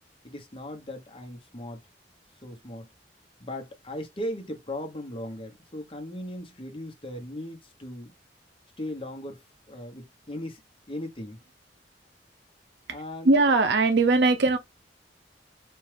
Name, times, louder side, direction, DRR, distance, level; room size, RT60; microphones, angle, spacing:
voice 1, 0.2-1.8 2.4-2.9 3.4-8.1 8.8-10.6 10.9-11.4 12.9-13.3, left 1 dB, 30° left, 1.0 m, -38 dB
voice 2, 13.2-14.6, right 3 dB, 70° right, 0.6 m, -20 dB
4.4 x 2.4 x 3.3 m
head